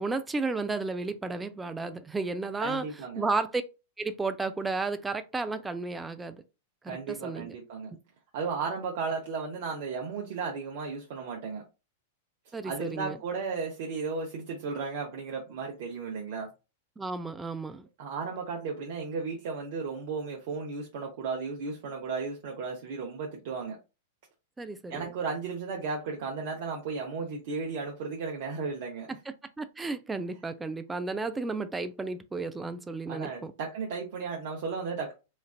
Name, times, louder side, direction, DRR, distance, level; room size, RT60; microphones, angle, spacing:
voice 1, 0.0-2.8 3.2-3.6 4.0-6.4 6.8-7.6 12.5-13.2 17.0-17.9 24.6-25.1 29.6-33.5, right 3 dB, 10° right, 0.3 m, -33 dB
voice 2, 2.6-3.3 6.9-8.0 8.3-11.6 12.6-16.5 18.0-23.8 24.9-29.1 33.1-35.1, right 4 dB, 50° right, 0.6 m, -34 dB
3.1 x 2.4 x 2.3 m
figure-of-eight pair, 95°, 0 cm